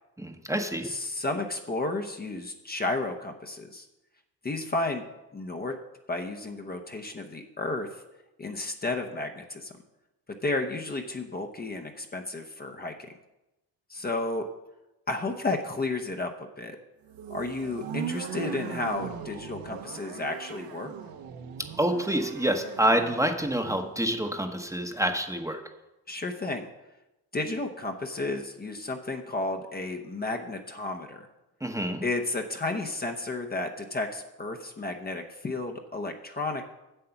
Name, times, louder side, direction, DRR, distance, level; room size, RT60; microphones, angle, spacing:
voice 1, 0.2-0.9 21.8-25.6 31.6-32.0, right 1 dB, 10° right, 5 dB, 1.0 m, -27 dB
voice 2, 0.8-3.9 4.4-5.0 5.3-5.8 6.1-8.0 8.4-9.7 10.4-13.1 13.9-14.4 15.1-16.3 16.6-16.8 17.3-20.9 26.1-26.7 27.3-31.3 32.0-36.7, left 2 dB, 25° left, 4 dB, 0.8 m, -32 dB
sound 1, 17.1-23.9, right 8 dB, 65° right, 1.1 m, -39 dB
7.9 x 7.6 x 5.8 m, 0.97 s
cardioid pair, 90°, 38 cm